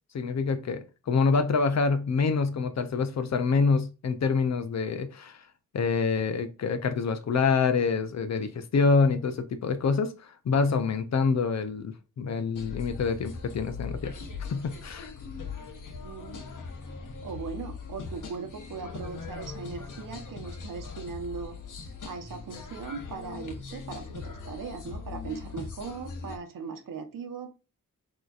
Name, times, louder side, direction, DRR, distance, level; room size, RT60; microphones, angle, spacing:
voice 1, 0.1-5.4 5.7-14.2 14.5-15.1, left 4 dB, 55° left, 0.6 m, -26 dB
sound 1, 12.5-26.4, left 5 dB, 70° left, 1.0 m, -40 dB
voice 2, 16.0-16.7 17.2-21.6 21.8-27.5, right 5 dB, 80° right, 1.0 m, -39 dB
6.4 x 3.0 x 2.4 m
wide cardioid pair, 175°, 32 cm